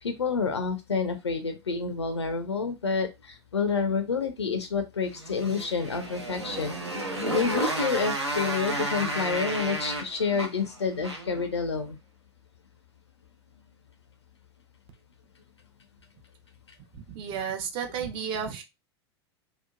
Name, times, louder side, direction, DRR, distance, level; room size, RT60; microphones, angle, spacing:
voice 1, 0.0-6.8 7.3-12.0, left 5 dB, 85° left, 8 dB, 0.4 m, -28 dB
Motorcycle, 5.1-11.5, right 1 dB, 85° right, 0.6 m, -32 dB
voice 2, 16.9-18.6, right 7 dB, 40° right, 4 dB, 0.6 m, -33 dB
2.8 x 2.1 x 2.3 m, 0.23 s
figure-of-eight pair, 85°, 14 cm